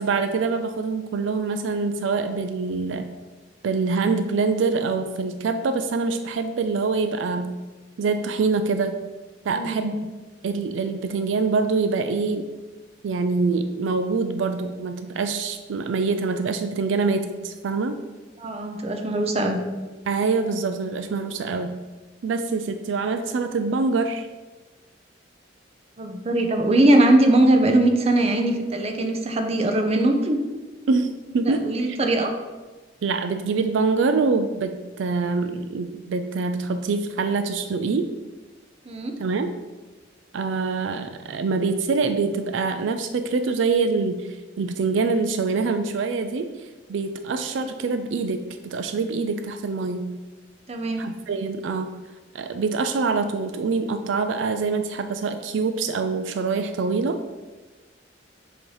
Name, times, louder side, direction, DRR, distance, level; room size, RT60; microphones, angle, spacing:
voice 1, 0.0-3.1 3.6-7.6 8.0-9.0 9.4-10.0 10.4-12.5 13.0-18.0 20.1-21.8 22.2-24.3 30.9-32.0 33.0-38.1 39.2-39.5 40.3-46.5 46.9-50.2 51.0-51.9 52.3-57.2, right 4 dB, 80° right, 8 dB, 0.4 m, -25 dB
voice 2, 9.5-9.9 18.4-19.6 26.0-30.4 31.6-32.3 38.9-39.1 47.5-47.6 50.7-51.0, right 1 dB, 35° right, 4 dB, 0.6 m, -20 dB
7.0 x 2.9 x 4.8 m, 1.2 s
head